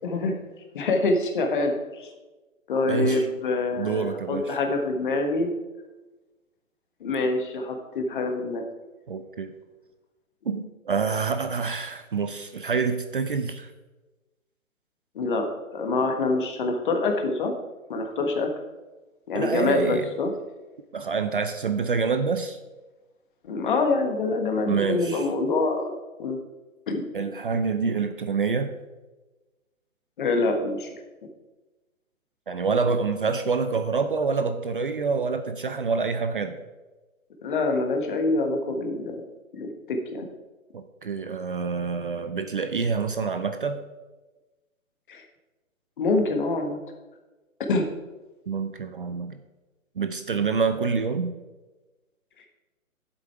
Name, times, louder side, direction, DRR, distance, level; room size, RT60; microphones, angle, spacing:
voice 1, 0.0-0.3 0.7-2.1 2.7-5.5 7.0-8.6 15.1-17.5 17.9-18.5 19.3-20.3 23.4-26.4 26.9-27.0 30.2-30.9 37.4-39.2 39.5-40.3 45.1-45.2 46.0-46.8 47.7-47.9, left 3 dB, 35° left, 4 dB, 1.4 m, -25 dB
voice 2, 2.9-3.2 3.8-4.6 9.1-9.5 10.5-13.7 19.3-20.1 20.9-22.6 24.7-25.2 27.1-28.7 32.5-36.6 40.7-43.8 48.5-49.4 50.0-51.3, right 5 dB, 40° right, 9 dB, 0.5 m, -27 dB
9.8 x 7.8 x 4.6 m, 1.2 s
hypercardioid pair, 155°, 42 cm